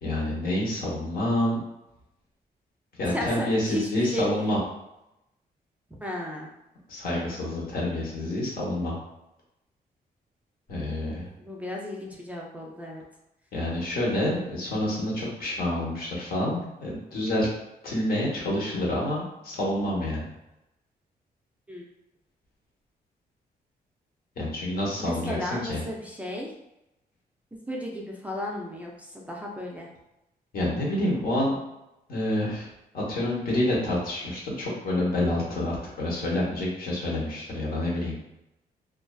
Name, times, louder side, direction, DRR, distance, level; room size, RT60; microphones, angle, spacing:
voice 1, 0.0-1.6 3.0-4.6 6.9-9.0 10.7-11.3 13.5-17.5 17.8-20.3 24.4-25.8 30.5-31.6 32.1-32.7 32.9-38.2, left 1 dB, 65° left, -4 dB, 1.0 m, -28 dB
voice 2, 3.1-4.3 6.0-6.5 11.4-13.0 21.7-21.8 25.0-26.5 27.7-29.9, equal, 10° right, -2 dB, 0.4 m, -34 dB
2.5 x 2.3 x 2.2 m, 0.91 s
cardioid pair, 110°, 17 cm